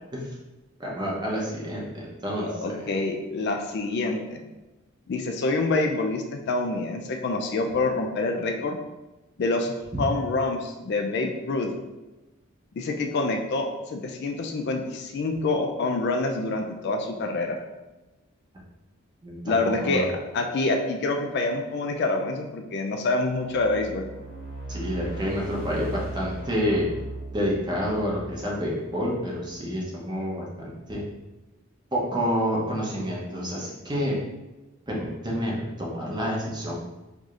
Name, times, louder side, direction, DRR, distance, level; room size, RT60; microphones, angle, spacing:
voice 1, 0.8-2.8 9.9-10.0 19.2-19.6 19.8-20.1 24.7-26.9 27.3-31.0 31.9-34.2 34.9-36.9, equal, 20° right, -4 dB, 0.8 m, -28 dB
voice 2, 2.4-4.4 5.1-8.8 9.4-11.7 12.7-17.6 19.4-20.1 20.3-24.0, left 2 dB, 55° left, 3 dB, 0.4 m, -26 dB
sound 1, 23.3-29.5, right 2 dB, 90° left, 1.3 m, -38 dB
4.7 x 2.7 x 2.4 m, 1.1 s
head